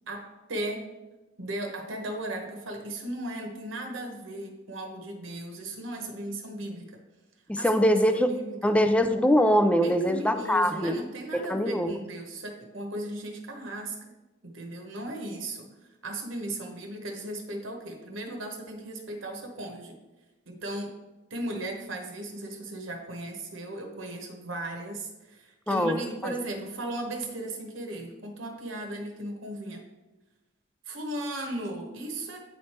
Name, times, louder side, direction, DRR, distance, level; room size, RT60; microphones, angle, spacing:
voice 1, 0.1-0.9 1.4-7.0 7.5-8.7 9.8-13.9 14.4-15.7 16.0-20.0 20.4-20.9 21.3-29.8 30.8-32.4, right 1 dB, 75° right, 2 dB, 1.0 m, -36 dB
voice 2, 7.5-8.3 8.6-11.0 11.3-11.9 25.7-26.3, equal, 5° left, 9 dB, 0.3 m, -23 dB
9.3 x 3.2 x 4.3 m, 1.1 s
head